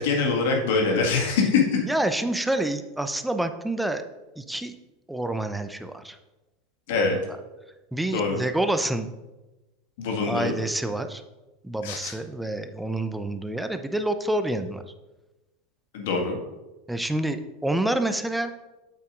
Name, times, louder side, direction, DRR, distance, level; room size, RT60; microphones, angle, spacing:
voice 1, 0.0-1.8 6.9-7.2 8.1-8.4 10.0-10.5 11.8-12.1 15.9-16.4, left 4 dB, 65° left, 0 dB, 1.9 m, -24 dB
voice 2, 1.8-4.0 4.4-4.8 5.1-6.2 6.9-7.1 7.9-9.1 10.3-11.2 11.6-14.8 16.9-18.5, right 1 dB, 5° right, 8 dB, 0.6 m, -27 dB
8.3 x 8.2 x 2.6 m, 1.1 s
hypercardioid pair, 85°, 0 cm